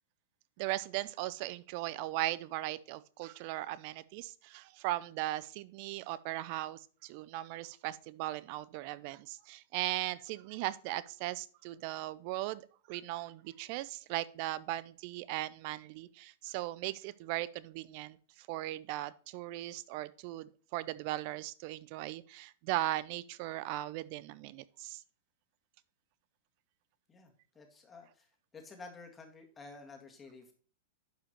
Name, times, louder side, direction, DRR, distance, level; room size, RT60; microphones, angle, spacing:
voice 1, 0.6-25.0, right 16 dB, 50° right, 18 dB, 0.5 m, -38 dB
voice 2, 27.6-28.3 28.5-30.5, left 3 dB, 20° left, 3 dB, 1.9 m, -51 dB
11.5 x 5.0 x 3.0 m, 0.42 s
figure-of-eight pair, 100°, 0 cm